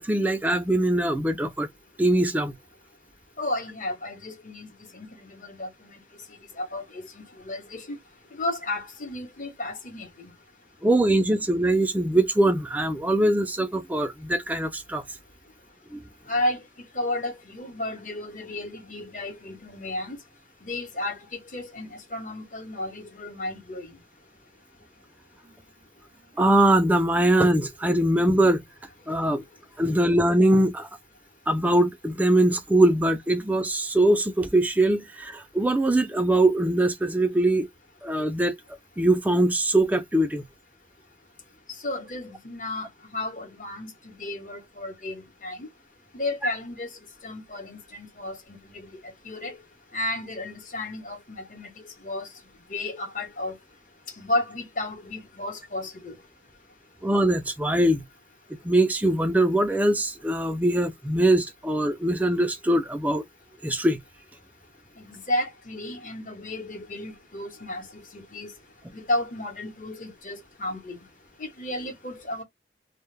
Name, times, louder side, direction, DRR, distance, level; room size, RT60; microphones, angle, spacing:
voice 1, 0.0-1.7 2.0-2.5 10.8-15.0 15.9-16.0 26.4-28.6 29.1-29.4 29.8-30.9 31.5-37.7 38.0-38.5 39.0-40.4 57.0-58.0 58.6-63.2 63.6-64.0, right 1 dB, 10° right, 0.3 m, -22 dB
voice 2, 3.4-4.7 4.9-6.0 6.6-8.0 8.4-10.3 16.3-16.6 16.9-20.2 20.6-21.2 21.5-24.0 41.8-45.7 46.1-46.9 47.2-48.4 48.6-49.0 49.2-49.6 49.9-51.7 52.0-52.3 52.7-53.6 54.2-56.1 65.0-67.8 68.1-68.5 68.9-71.0 71.4-72.4, left 1 dB, 45° left, 0.9 m, -33 dB
2.2 x 2.0 x 3.1 m
head